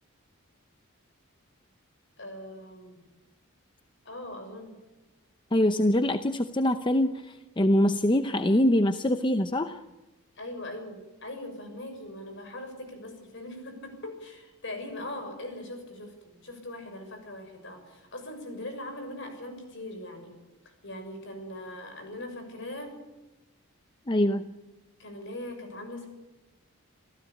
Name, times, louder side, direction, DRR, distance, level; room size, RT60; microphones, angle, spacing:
voice 1, 2.2-3.0 4.0-4.8 10.4-20.3 20.8-22.9 25.0-26.1, left 1 dB, 55° left, 5 dB, 6.6 m, -40 dB
voice 2, 5.5-9.8 24.1-24.5, left 1 dB, 20° left, 9 dB, 0.7 m, -24 dB
27.5 x 15.5 x 8.5 m, 1.1 s
head